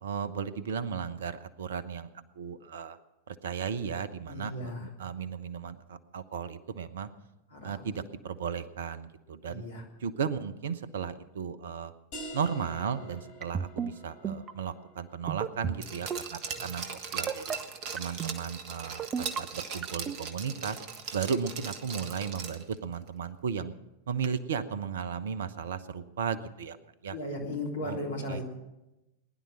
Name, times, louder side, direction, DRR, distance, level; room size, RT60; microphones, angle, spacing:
voice 1, 0.0-2.1 2.4-3.0 3.3-7.1 7.6-9.6 10.0-11.9 12.3-16.8 17.1-17.6 17.9-20.8 21.1-23.7 24.1-26.8 27.0-27.2 27.8-28.0 28.3-28.4, right 6 dB, 60° right, 15 dB, 0.9 m, -35 dB
voice 2, 4.3-4.9 7.5-7.9 9.5-9.9 27.1-28.4, left 1 dB, 70° left, 0 dB, 3.5 m, -36 dB
sound 1, 12.1-17.5, equal, 45° left, 5.9 m, -48 dB
sound 2, 13.4-13.9 14.2-14.5 15.3-15.8 16.1-16.4 17.1-17.6 18.0-18.3 19.0-19.4 19.8-20.2, right 7 dB, 25° right, 0.7 m, -32 dB
Glass, 15.8-22.8 23.1-23.2, right 6 dB, 40° right, 1.4 m, -39 dB
20.5 x 11.0 x 6.3 m, 0.96 s
figure-of-eight pair, 90°, 0 cm